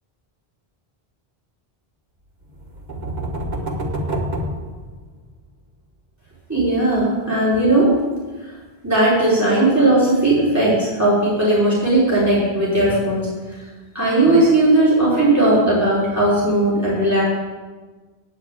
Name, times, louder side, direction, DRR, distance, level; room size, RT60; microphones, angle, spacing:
sound 1, 2.5-5.4, right 1 dB, 45° right, 1.6 m, -27 dB
voice 1, 6.5-7.9 8.8-13.3 13.9-17.2, right 1 dB, 15° right, -9 dB, 4.2 m, -17 dB
8.9 x 7.9 x 8.8 m, 1.3 s
omnidirectional pair, 1.0 m